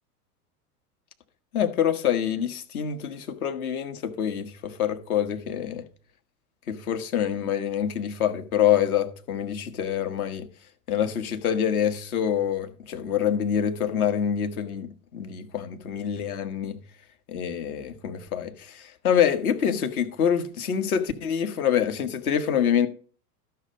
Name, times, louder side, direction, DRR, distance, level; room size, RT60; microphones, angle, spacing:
voice 1, 1.5-5.8 6.7-10.5 10.9-16.8 17.3-22.9, left 9 dB, 65° left, 1.5 m, -26 dB
12.5 x 5.8 x 5.2 m
hypercardioid pair, 95°, 46 cm